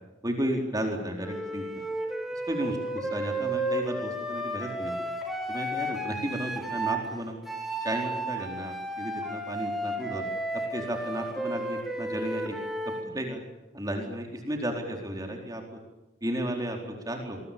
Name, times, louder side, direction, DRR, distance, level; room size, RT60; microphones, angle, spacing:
voice 1, 0.2-1.8 2.3-5.1 5.5-7.4 7.8-10.2 10.7-12.6 13.0-13.4 13.7-15.8 16.2-17.4, right 1 dB, 20° right, 2 dB, 4.3 m, -33 dB
Wind instrument woodwind instrument, 1.2-7.0 7.4-13.1, right 1 dB, ahead, 4.8 m, -33 dB
27.0 x 22.0 x 7.1 m, 1.0 s
head